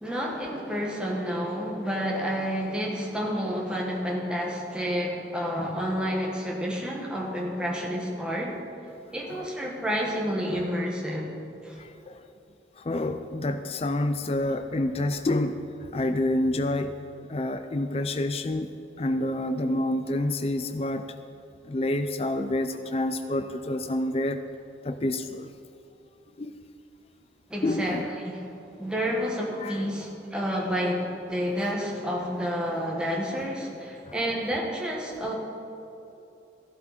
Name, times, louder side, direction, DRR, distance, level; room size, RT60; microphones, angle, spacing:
voice 1, 0.0-8.6 9.1-11.3 11.6-11.8 27.5-28.4 28.8-35.3, equal, 5° right, -3 dB, 1.7 m, -30 dB
voice 2, 11.8-12.2 12.8-16.9 17.3-18.7 19.0-21.0 21.6-24.4 24.8-25.5 26.4-26.7 27.6-28.1 29.6-29.8 34.1-34.2, left 1 dB, 30° left, 8 dB, 0.4 m, -28 dB
14.5 x 12.0 x 4.4 m, 2.8 s
head